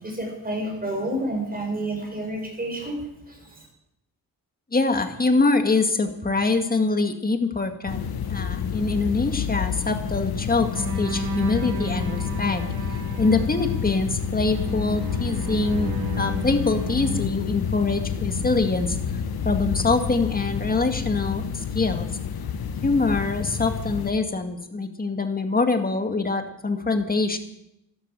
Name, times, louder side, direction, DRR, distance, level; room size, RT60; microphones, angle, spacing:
voice 1, 0.0-3.7, right 1 dB, 25° right, 1 dB, 7.2 m, -30 dB
voice 2, 4.7-12.6 13.2-19.0 19.4-22.1 22.8-27.4, left 3 dB, 25° left, 6 dB, 2.0 m, -24 dB
sound 1, 7.9-24.1, left 7 dB, 75° left, 1.5 m, -29 dB
sound 2, 10.7-17.3, right 1 dB, 70° right, 2.5 m, -34 dB
13.0 x 12.5 x 7.8 m, 0.81 s
cardioid pair, 90°, 37 cm